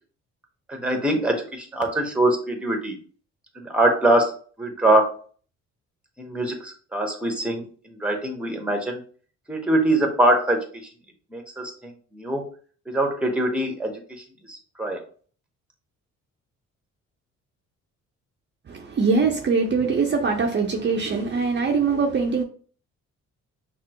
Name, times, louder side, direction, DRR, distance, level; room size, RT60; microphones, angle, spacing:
voice 1, 0.7-3.0 3.5-5.2 6.2-9.0 9.5-10.9 11.3-12.5 12.9-15.0, right 1 dB, 5° right, 1.0 m, -23 dB
voice 2, 18.7-22.4, right 4 dB, 35° right, 0.7 m, -22 dB
5.9 x 2.0 x 2.9 m
cardioid pair, 90°, 30 cm